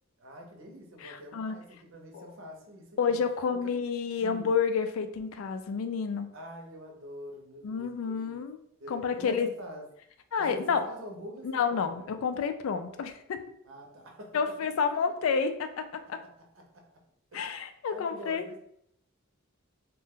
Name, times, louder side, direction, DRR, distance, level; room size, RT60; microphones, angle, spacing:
voice 1, 0.2-3.2 3.5-3.6 4.2-4.6 6.3-8.4 8.8-9.9 10.4-12.1 13.6-14.4 16.2-16.9 17.3-17.6 17.9-18.6, equal, 70° right, 0.7 m, -45 dB
voice 2, 1.0-1.6 2.1-2.3 3.0-6.3 7.6-9.5 10.3-10.8 11.4-13.4 14.3-16.2 17.3-18.4, left 6 dB, 90° left, 0.3 m, -30 dB
2.8 x 2.2 x 3.5 m
head